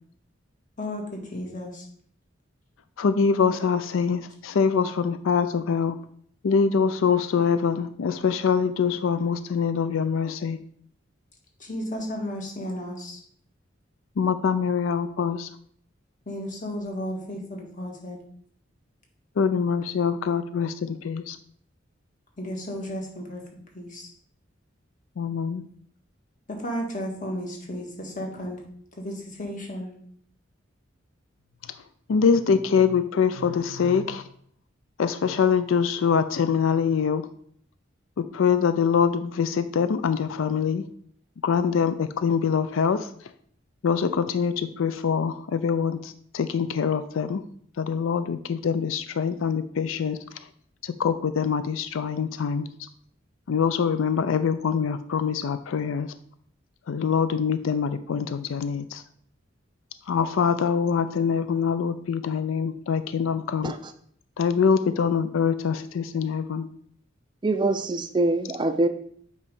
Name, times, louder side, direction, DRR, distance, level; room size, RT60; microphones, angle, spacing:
voice 1, 0.8-1.8 11.6-13.2 16.2-18.2 22.4-23.4 23.7-24.1 26.5-28.6 29.0-29.9, equal, 40° left, 0 dB, 1.7 m, -33 dB
voice 2, 3.0-6.0 6.4-10.6 14.2-15.5 19.4-21.4 25.2-25.6 32.1-34.2 35.0-37.3 38.3-40.8 41.4-43.1 43.8-47.4 47.8-50.2 50.8-52.7 53.5-56.1 56.9-59.0 60.1-63.7 64.4-66.7, left 6 dB, 90° left, 12 dB, 0.4 m, -24 dB
voice 3, 67.4-68.9, right 2 dB, 25° right, 9 dB, 0.4 m, -24 dB
8.2 x 3.1 x 5.3 m, 0.62 s
head